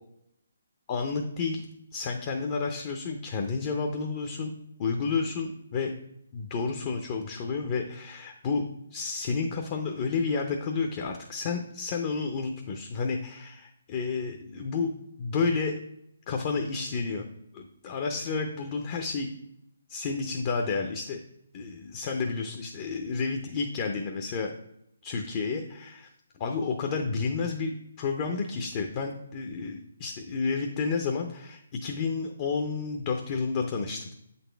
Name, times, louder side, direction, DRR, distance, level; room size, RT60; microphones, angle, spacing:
voice 1, 0.9-1.6 1.9-4.5 4.8-5.9 6.3-14.9 15.2-15.8 16.3-17.2 17.5-19.3 19.9-21.2 21.5-24.5 25.0-26.1 26.4-34.1, left 4 dB, 35° left, 3 dB, 0.6 m, -31 dB
7.8 x 4.1 x 3.4 m, 0.77 s
figure-of-eight pair, 145°, 0 cm